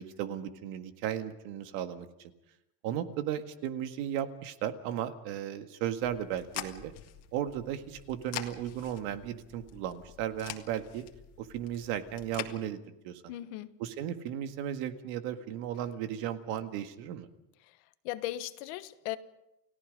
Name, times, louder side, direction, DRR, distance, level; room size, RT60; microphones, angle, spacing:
voice 1, 0.0-2.3 2.8-6.9 7.3-11.1 11.4-12.8 13.0-13.4 13.8-17.3, right 10 dB, 60° right, 8 dB, 1.8 m, -35 dB
sound 1, 6.0-12.5, left 11 dB, 40° left, 1.9 m, -45 dB
voice 2, 13.3-13.7 18.0-19.2, left 15 dB, 65° left, 12 dB, 1.3 m, -37 dB
30.0 x 17.5 x 5.3 m, 0.87 s
cardioid pair, 180°, 38 cm